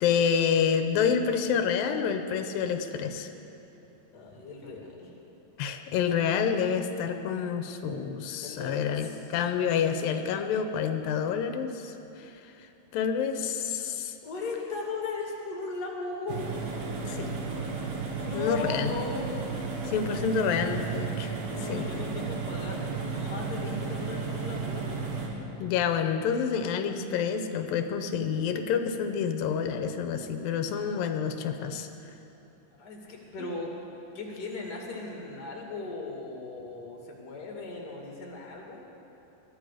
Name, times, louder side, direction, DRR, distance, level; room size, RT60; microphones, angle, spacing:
voice 1, 0.0-3.3 5.6-12.5 12.9-14.1 17.1-17.4 18.3-18.9 19.8-21.4 21.6-21.9 25.6-31.9 33.4-33.5, left 7 dB, 85° left, 7 dB, 2.5 m, -28 dB
voice 2, 4.1-5.1 8.4-9.3 14.2-16.4 18.2-19.3 21.5-25.1 32.8-33.7 34.1-38.8, left 3 dB, 30° left, -1 dB, 2.4 m, -37 dB
sound 1, 16.3-25.3, right 4 dB, 90° right, 3.4 m, -33 dB
21.5 x 13.5 x 4.9 m, 2.9 s
omnidirectional pair, 3.9 m